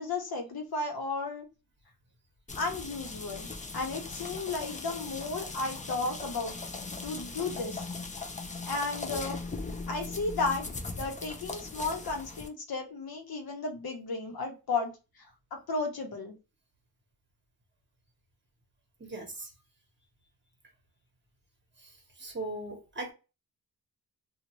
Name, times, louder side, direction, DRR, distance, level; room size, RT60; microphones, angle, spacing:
voice 1, 0.0-1.5 2.5-6.6 7.0-7.9 8.7-9.4 9.9-15.3 15.5-16.3, left 3 dB, 80° left, 1.0 m, -34 dB
sound 1, 2.5-12.5, left 3 dB, 20° left, 0.4 m, -39 dB
voice 2, 19.0-19.5 21.8-21.9 22.2-23.1, right 2 dB, 30° right, 1.2 m, -38 dB
2.6 x 2.4 x 3.0 m
wide cardioid pair, 100°, 36 cm